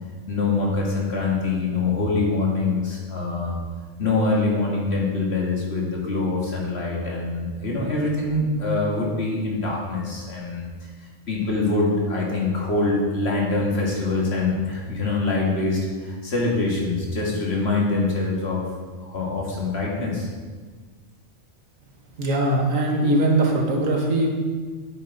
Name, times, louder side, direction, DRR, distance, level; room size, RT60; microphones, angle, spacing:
voice 1, 0.3-3.6 4.0-10.6 11.3-18.6 19.0-20.3, left 3 dB, 55° left, -3 dB, 2.2 m, -24 dB
voice 2, 22.2-24.3, right 1 dB, 80° right, 0 dB, 1.8 m, -21 dB
9.1 x 7.9 x 4.0 m, 1.5 s
omnidirectional pair, 1.3 m